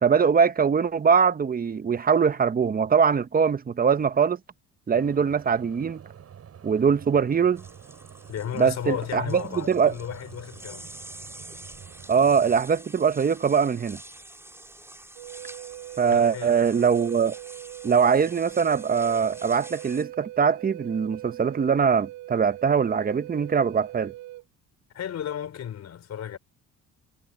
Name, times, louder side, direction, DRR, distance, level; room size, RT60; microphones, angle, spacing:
voice 1, 0.0-4.4 4.9-6.0 6.6-7.6 8.6-9.9 12.1-14.0 16.0-17.3 17.8-24.1, right 6 dB, 30° right, 1.0 m, -22 dB
sound 1, 4.9-12.6, right 8 dB, 50° right, 7.3 m, -48 dB
sound 2, 7.6-20.0, right 1 dB, 10° right, 4.7 m, -47 dB
voice 2, 8.3-10.9 16.1-16.6 24.9-26.4, left 9 dB, 55° left, 4.5 m, -34 dB
Wind instrument woodwind instrument, 15.2-24.4, right 16 dB, 85° right, 3.7 m, -41 dB
cardioid pair, 105°, 32 cm